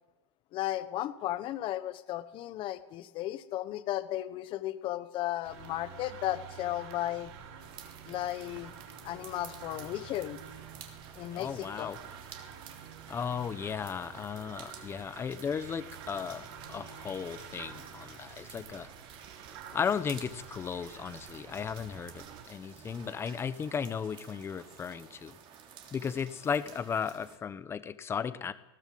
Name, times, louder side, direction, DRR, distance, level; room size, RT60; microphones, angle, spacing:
voice 1, 0.5-7.3 8.1-8.7 9.0-10.4 11.2-11.9, left 14 dB, 30° left, 13 dB, 1.2 m, -35 dB
sound 1, 5.4-22.4, right 7 dB, 55° right, 3.7 m, -49 dB
sound 2, 7.6-27.4, right 7 dB, 35° right, 3.2 m, -52 dB
voice 2, 11.3-12.0 13.1-18.9 19.7-25.4 25.9-28.5, left 7 dB, 15° left, 14 dB, 1.0 m, -35 dB
20.0 x 18.5 x 7.8 m, 1.0 s
supercardioid pair, 155°, 16 cm